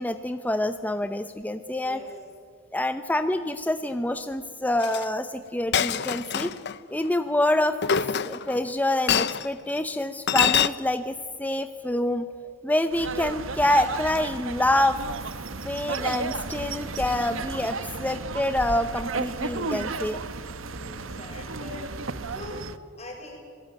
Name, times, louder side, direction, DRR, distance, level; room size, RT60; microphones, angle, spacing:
voice 1, 0.0-2.0 2.7-6.5 6.9-7.8 8.2-12.3 12.6-15.0 15.6-20.2, left 1 dB, 10° left, 9 dB, 0.8 m, -26 dB
voice 2, 1.8-2.1 20.7-23.4, left 2 dB, 30° left, 1 dB, 6.9 m, -42 dB
Chink clink, 4.8-5.0 5.7-6.7 7.8-8.6 9.1-9.4 10.3-10.7, left 8 dB, 55° left, 0.8 m, -24 dB
sound 1, 12.9-22.8, right 3 dB, 75° right, 1.2 m, -33 dB
27.0 x 19.5 x 9.3 m, 2.1 s
head